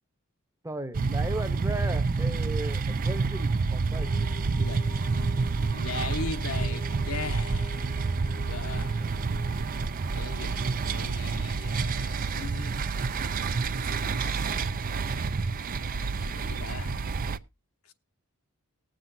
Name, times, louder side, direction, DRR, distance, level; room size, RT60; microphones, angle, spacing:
voice 1, 0.6-4.1, right 1 dB, 15° right, 0.9 m, -36 dB
sound 1, 0.9-17.4, right 4 dB, 40° right, 0.5 m, -29 dB
sound 2, 3.9-10.8, left 4 dB, 25° left, 0.9 m, -48 dB
voice 2, 4.6-5.0 5.7-7.9 8.2-9.0 10.1-12.8 13.9-15.6 15.9-17.0, left 3 dB, 75° left, 1.2 m, -40 dB
20.0 x 7.7 x 2.7 m
head